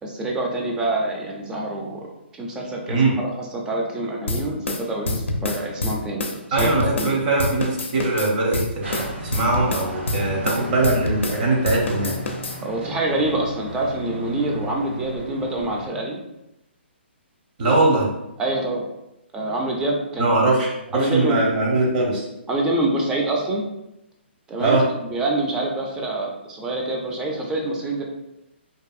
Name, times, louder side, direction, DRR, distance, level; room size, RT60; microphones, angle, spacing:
voice 1, 0.0-2.1 2.3-7.3 12.6-16.2 18.4-18.8 19.3-20.4 20.9-21.4 22.5-23.6 24.5-28.0, right 2 dB, 10° right, 0 dB, 0.4 m, -26 dB
sound 1, 4.3-7.1 7.4-11.4 11.6-12.6, left 2 dB, 85° left, 0.4 m, -27 dB
voice 2, 6.5-12.2 17.6-18.1 20.2-22.3 24.6-24.8, right 2 dB, 45° right, -2 dB, 0.8 m, -21 dB
sound 2, 8.8-15.9, equal, 75° right, 0.9 m, -35 dB
2.7 x 2.5 x 2.4 m, 0.90 s
hypercardioid pair, 145°, 6 cm